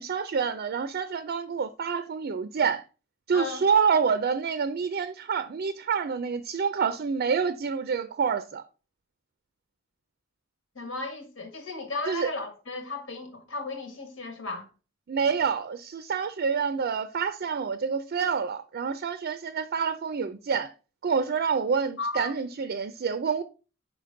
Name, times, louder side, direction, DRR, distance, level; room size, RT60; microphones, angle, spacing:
voice 1, 0.0-2.8 3.3-8.6 12.1-12.3 15.1-20.7 21.0-23.4, right 6 dB, 50° right, 0.4 m, -27 dB
voice 2, 3.3-3.6 10.7-14.7 22.0-22.3, left 3 dB, 80° left, 1.5 m, -35 dB
5.1 x 5.0 x 3.8 m
head